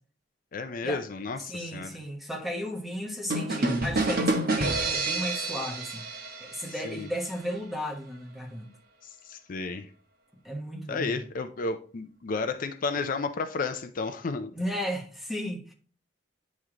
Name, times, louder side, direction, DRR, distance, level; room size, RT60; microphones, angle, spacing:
voice 1, 0.5-1.9 6.8-7.1 9.0-9.9 10.9-14.5, left 4 dB, 50° left, 0.5 m, -32 dB
voice 2, 1.5-8.7 10.4-11.2 14.5-15.7, equal, ahead, 1.1 m, -35 dB
sound 1, 3.3-7.0, right 2 dB, 55° right, 1.2 m, -28 dB
9.5 x 3.2 x 3.7 m
head